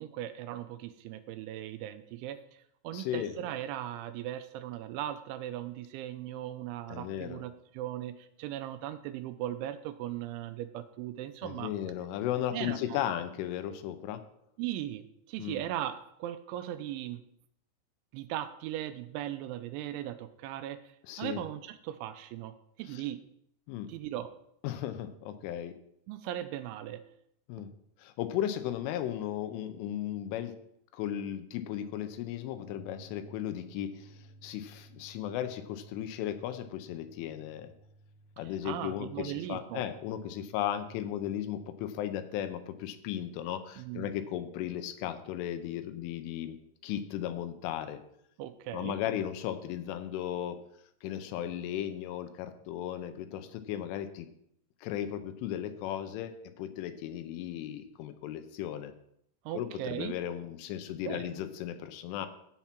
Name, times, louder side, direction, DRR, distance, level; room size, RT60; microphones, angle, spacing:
voice 1, 0.0-11.7 12.5-13.1 14.6-17.2 18.1-23.2 23.9-24.3 26.1-27.0 38.4-39.8 43.8-44.1 48.4-49.0 59.5-60.2 61.1-61.3, right 12 dB, 85° right, 9 dB, 2.7 m, -38 dB
voice 2, 2.9-3.3 6.9-7.4 11.4-14.2 15.4-15.6 21.1-21.4 22.9-23.0 23.7-23.9 24.6-25.7 27.5-27.7 28.0-30.5 30.9-37.7 38.4-46.6 46.8-48.0 48.7-50.6 51.0-54.3 54.8-58.9 59.5-62.3, left 11 dB, 80° left, 9 dB, 3.1 m, -36 dB
sound 1, 32.5-45.4, right 1 dB, 40° right, 5.7 m, -58 dB
15.0 x 5.6 x 5.9 m, 0.73 s
omnidirectional pair, 6.0 m